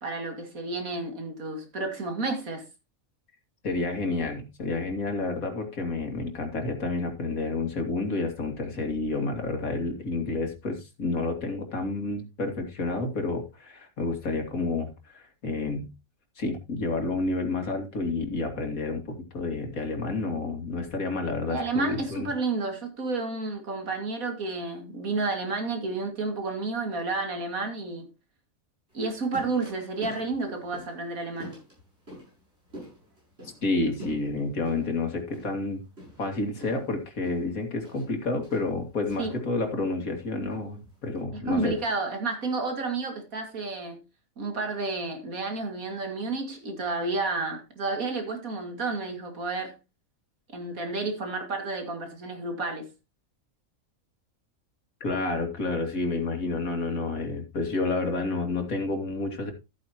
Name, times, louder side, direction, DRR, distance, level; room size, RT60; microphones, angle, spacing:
voice 1, 0.0-2.7 21.5-28.1 28.9-31.6 39.2-39.3 41.3-44.0 44.4-49.8 50.5-52.9, right 3 dB, 85° right, 2.7 m, -31 dB
voice 2, 3.6-15.9 16.4-22.3 33.6-35.8 36.2-41.8 55.0-59.5, left 3 dB, 85° left, 2.8 m, -30 dB
sound 1, 28.9-41.2, equal, 45° right, 7.6 m, -48 dB
14.0 x 8.7 x 2.9 m
omnidirectional pair, 1.4 m